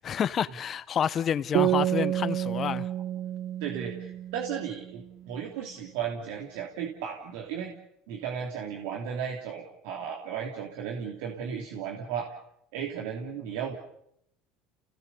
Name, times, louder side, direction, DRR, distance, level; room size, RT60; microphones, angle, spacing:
voice 1, 0.0-2.9, left 8 dB, 40° left, 1.0 m, -29 dB
sound 1, 1.5-5.0, right 12 dB, 50° right, 0.8 m, -29 dB
voice 2, 3.6-7.7 8.1-12.3 12.7-13.7, right 7 dB, 80° right, 3.0 m, -35 dB
29.5 x 18.0 x 7.0 m
supercardioid pair, 115°, 0 cm